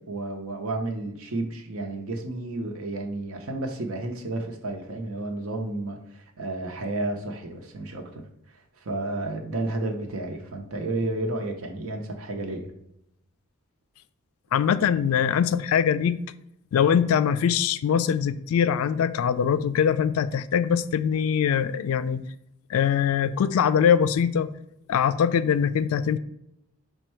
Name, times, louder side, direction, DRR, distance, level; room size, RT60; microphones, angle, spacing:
voice 1, 0.1-8.2 8.8-12.7, right 2 dB, 85° right, 3 dB, 0.8 m, -31 dB
voice 2, 14.5-16.2 16.7-22.2 22.7-24.5 24.9-26.2, left 8 dB, 80° left, 15 dB, 0.3 m, -22 dB
5.3 x 2.2 x 4.3 m, 0.79 s
head